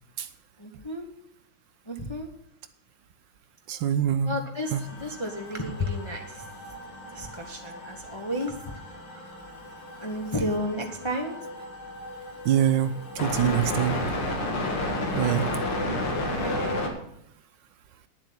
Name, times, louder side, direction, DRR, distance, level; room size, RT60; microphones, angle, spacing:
voice 1, 0.6-1.1 1.9-2.3 4.2-6.5 7.1-8.9 10.0-11.4 16.3-16.6, left 1 dB, 20° left, 1 dB, 0.8 m, -32 dB
voice 2, 3.7-4.3 4.7-4.8 12.4-14.0 15.1-15.5, right 10 dB, 75° right, 11 dB, 1.2 m, -24 dB
sound 1, 4.6-16.9, left 1 dB, 85° left, 2.6 m, -33 dB
9.9 x 7.5 x 7.1 m, 0.74 s
omnidirectional pair, 2.2 m